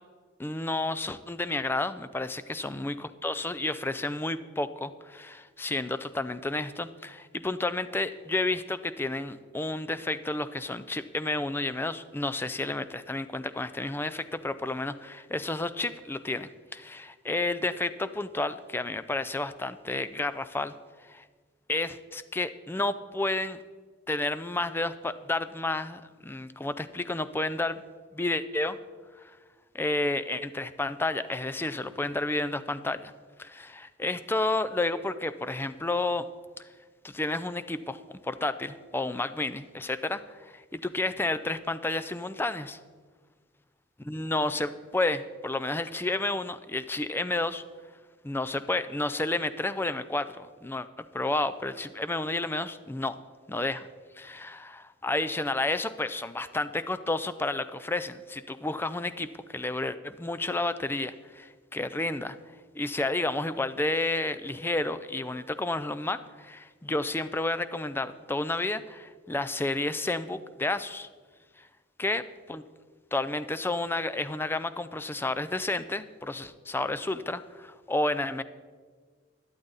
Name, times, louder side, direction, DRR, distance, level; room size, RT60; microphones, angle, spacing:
voice 1, 0.4-20.7 21.0-21.2 21.7-23.6 24.1-27.8 28.1-28.8 29.2-29.3 29.7-33.1 33.4-36.3 37.0-42.8 44.1-47.6 48.2-50.9 51.1-53.2 53.5-53.9 54.1-62.4 62.7-71.1 71.6-71.7 72.0-72.2 72.5-72.6 73.1-78.4, left 2 dB, 10° left, 12 dB, 0.4 m, -31 dB
12.5 x 11.5 x 4.0 m, 1.5 s
head